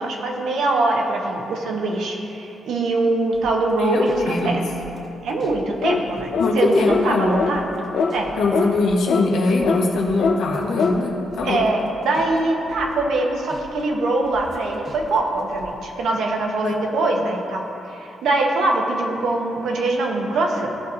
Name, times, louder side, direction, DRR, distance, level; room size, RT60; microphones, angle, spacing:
voice 1, 0.0-4.6 5.2-7.7 8.1-8.3 11.4-20.7, right 2 dB, 70° right, 1 dB, 1.2 m, -23 dB
sound 1, 3.3-5.6 5.9-8.5 8.7-12.4 12.6-13.8 14.2-15.7, right 1 dB, 30° right, 1.4 m, -44 dB
voice 2, 3.8-4.6 6.4-7.3 8.4-11.1 11.4-11.6 16.6-16.7, left 3 dB, 85° left, -2 dB, 1.6 m, -21 dB
sound 2, 5.8-6.0 6.3-6.5 6.9-7.1 7.4-7.5 7.9-8.1 8.5-8.7 9.1-9.2 9.6-9.8 10.2-10.4 10.8-11.0, left 5 dB, 55° left, 0.6 m, -21 dB
16.0 x 5.9 x 2.9 m, 2.9 s
wide cardioid pair, 175°, 0 cm